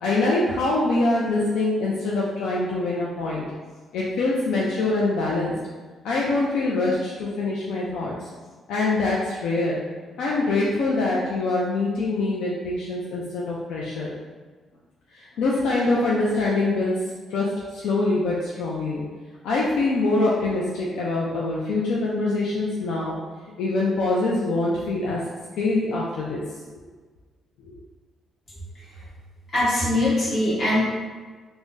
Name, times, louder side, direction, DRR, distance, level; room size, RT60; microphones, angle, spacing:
voice 1, 0.0-3.4 3.9-5.6 6.0-8.3 8.7-9.8 10.2-14.2 15.1-17.0 17.3-19.0 19.4-23.2 23.6-25.3 25.6-26.4 27.7-27.8, left 2 dB, 85° left, -5 dB, 0.4 m, -24 dB
voice 2, 29.5-30.8, left 1 dB, 50° left, -8 dB, 1.3 m, -21 dB
3.5 x 2.1 x 2.6 m, 1.4 s
cardioid pair, 90°, 0 cm